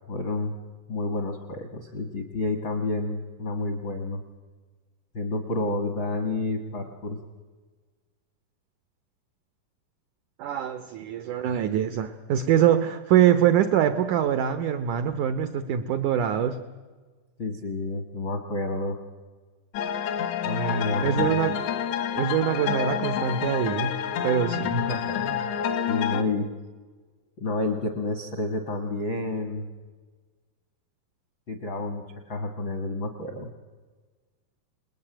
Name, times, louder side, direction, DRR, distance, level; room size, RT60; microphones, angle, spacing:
voice 1, 0.1-0.5 0.9-4.2 5.1-7.2 17.4-19.0 20.4-21.3 24.7-25.5 25.9-26.5 27.4-29.7 31.5-33.5, left 2 dB, 65° left, 7 dB, 1.1 m, -30 dB
voice 2, 10.4-16.6 21.0-21.6 22.1-24.0 24.2-24.8, right 10 dB, 90° right, 11 dB, 1.7 m, -24 dB
sound 1, 19.7-26.2, left 8 dB, 80° left, 3.5 m, -28 dB
28.5 x 20.5 x 9.0 m, 1.4 s
omnidirectional pair, 4.8 m